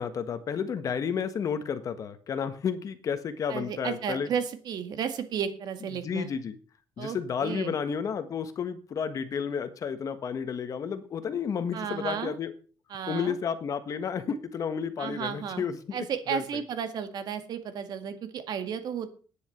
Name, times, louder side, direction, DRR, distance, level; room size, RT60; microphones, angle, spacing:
voice 1, 0.0-4.3 6.0-6.6 7.0-12.5 13.1-16.0 16.3-16.6, left 7 dB, 40° left, 11 dB, 1.4 m, -31 dB
voice 2, 3.5-6.3 7.0-7.7 11.7-12.4 12.9-13.4 15.0-19.1, right 7 dB, 55° right, 9 dB, 1.9 m, -33 dB
11.0 x 9.9 x 5.9 m, 0.39 s
cardioid pair, 150°, 8 cm